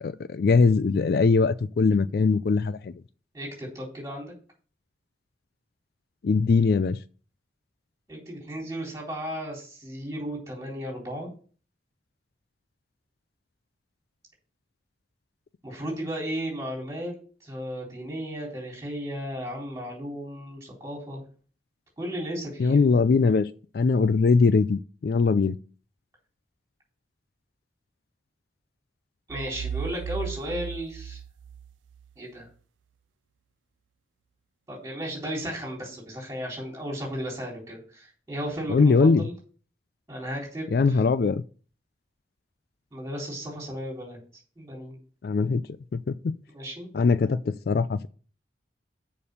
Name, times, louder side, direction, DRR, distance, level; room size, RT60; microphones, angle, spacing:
voice 1, 0.0-2.9 6.2-7.0 22.6-25.6 38.7-39.3 40.7-41.4 45.2-45.6 45.9-46.3 46.9-48.1, left 4 dB, 55° left, 0.3 m, -21 dB
voice 2, 3.3-4.3 8.1-11.3 15.6-17.1 17.4-21.2 22.0-22.8 29.3-31.2 32.2-32.5 34.7-39.3 40.1-41.0 42.9-44.2 44.6-45.0 46.5-46.9, equal, 15° right, 3.8 m, -35 dB
sound 1, 29.3-32.1, right 7 dB, 90° right, 0.3 m, -36 dB
6.9 x 5.3 x 6.5 m
head